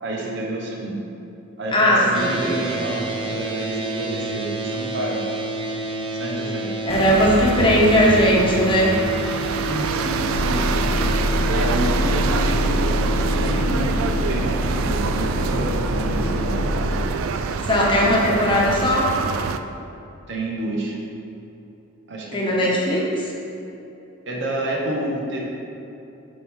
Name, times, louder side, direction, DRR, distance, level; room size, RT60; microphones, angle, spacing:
voice 1, 0.0-1.0 1.6-5.2 6.1-6.7 9.5-10.7 11.5-12.9 13.3-16.6 20.3-20.9 22.1-22.7 24.3-25.4, right 1 dB, 60° right, -2 dB, 1.1 m, -29 dB
voice 2, 1.7-2.6 6.8-9.0 17.7-19.1 22.3-23.3, equal, 25° left, -4 dB, 1.1 m, -18 dB
sound 1, 2.1-13.7, right 1 dB, 25° right, 0.5 m, -30 dB
sound 2, 6.9-19.6, right 6 dB, 75° right, 0.3 m, -26 dB
sound 3, 10.3-17.1, left 1 dB, 75° left, 1.0 m, -24 dB
7.5 x 5.2 x 3.6 m, 2.8 s
head